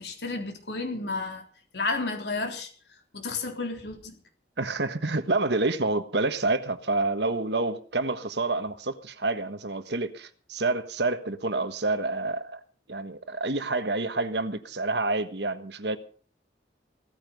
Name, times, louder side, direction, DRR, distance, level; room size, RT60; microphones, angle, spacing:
voice 1, 0.0-1.4 1.7-2.7 3.1-4.2, left 3 dB, 65° left, 3.5 m, -32 dB
voice 2, 4.6-12.6 12.9-16.0, right 2 dB, 70° right, 1.5 m, -28 dB
16.5 x 14.5 x 5.3 m
head